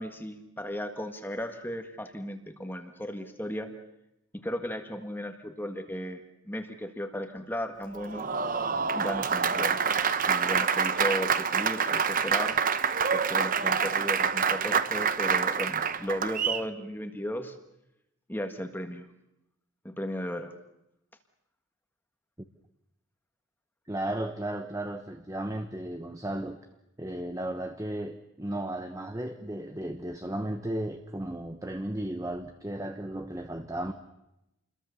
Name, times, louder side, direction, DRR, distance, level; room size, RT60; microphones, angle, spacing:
voice 1, 0.0-3.7 4.4-8.3 8.9-9.8 10.3-12.6 13.1-17.6 18.3-19.1 19.8-20.5, equal, 10° left, 1.6 m, -35 dB
Applause, 7.9-16.7, right 6 dB, 40° right, 0.9 m, -27 dB
voice 2, 23.9-26.6 27.0-33.9, right 1 dB, 15° right, 1.0 m, -34 dB
28.5 x 22.0 x 7.0 m
head